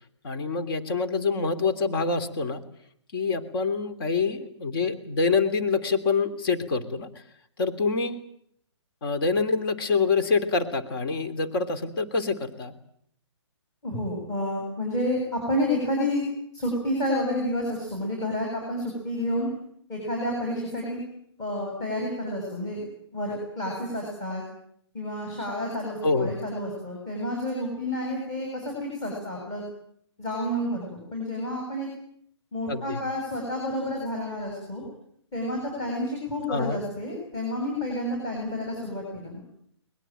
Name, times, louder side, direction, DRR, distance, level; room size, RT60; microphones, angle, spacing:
voice 1, 0.2-2.6 3.1-7.1 7.6-8.2 9.0-12.7 26.0-26.3 32.7-33.0 36.5-36.8, left 4 dB, 50° left, 9 dB, 3.0 m, -26 dB
voice 2, 13.8-16.2 16.5-19.5 19.9-21.0 21.4-22.9 23.1-24.4 24.9-29.6 30.2-31.9 32.5-34.8 35.3-39.4, left 1 dB, 20° left, -1 dB, 8.0 m, -30 dB
22.5 x 21.0 x 9.2 m, 0.70 s
hypercardioid pair, 145°, 15 cm